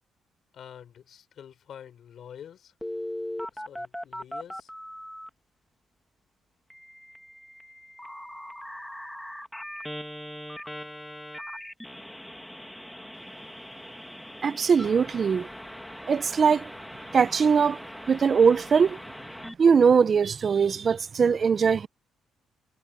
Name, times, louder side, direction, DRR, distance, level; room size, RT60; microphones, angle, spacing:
voice 1, 0.5-2.7 3.5-4.7, left 9 dB, 65° left, 5.2 m, -47 dB
Telephone, 2.8-5.3 6.7-19.5, equal, 5° left, 2.1 m, -40 dB
voice 2, 14.4-15.5 16.1-16.7 17.1-17.8 18.1-19.0 19.6-21.9, right 6 dB, 45° right, 0.8 m, -21 dB
cardioid pair, 90°, 0 cm